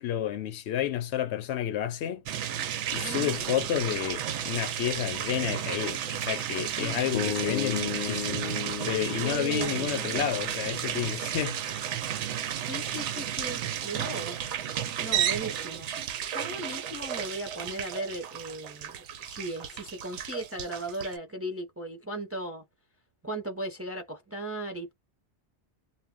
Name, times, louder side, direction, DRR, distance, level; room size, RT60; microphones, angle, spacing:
voice 1, 0.0-2.2 2.9-8.4 8.9-12.0, left 10 dB, 75° left, 0.8 m, -31 dB
sound 1, 2.3-21.2, right 10 dB, 90° right, 0.9 m, -33 dB
voice 2, 3.0-3.4 6.7-7.1 9.2-9.9 12.4-14.5 15.0-15.9 16.2-19.0 19.3-22.6 23.2-24.9, right 1 dB, 20° right, 0.5 m, -37 dB
sound 2, 7.1-11.3, left 8 dB, 40° left, 0.7 m, -35 dB
2.2 x 2.0 x 3.5 m
omnidirectional pair, 1.2 m